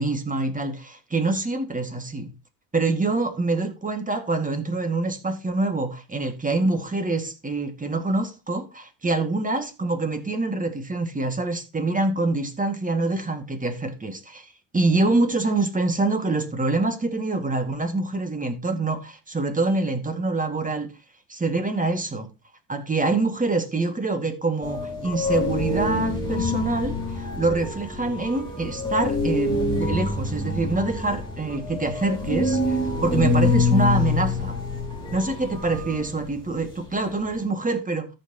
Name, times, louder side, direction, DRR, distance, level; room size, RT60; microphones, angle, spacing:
voice 1, 0.0-2.3 2.7-20.9 21.3-22.3 22.7-34.6 35.1-38.1, right 3 dB, 20° right, 2.0 m, -25 dB
sound 1, 24.6-37.4, left 3 dB, 10° left, 3.5 m, -26 dB
14.0 x 5.8 x 2.9 m
supercardioid pair, 75°, 44 cm